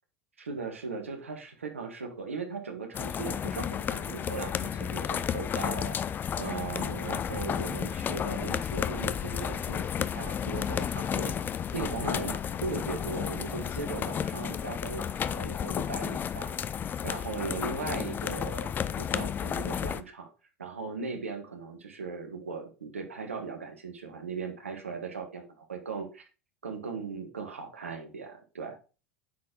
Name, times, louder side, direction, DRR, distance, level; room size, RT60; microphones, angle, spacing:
voice 1, 0.4-6.0 6.4-16.6 17.0-18.7 19.0-20.3 20.6-26.3 26.6-28.8, right 4 dB, 80° right, 5 dB, 1.3 m, -38 dB
sound 1, 2.9-20.0, left 8 dB, 30° left, 0.4 m, -32 dB
9.2 x 4.3 x 3.7 m, 0.34 s
figure-of-eight pair, 80°, 7 cm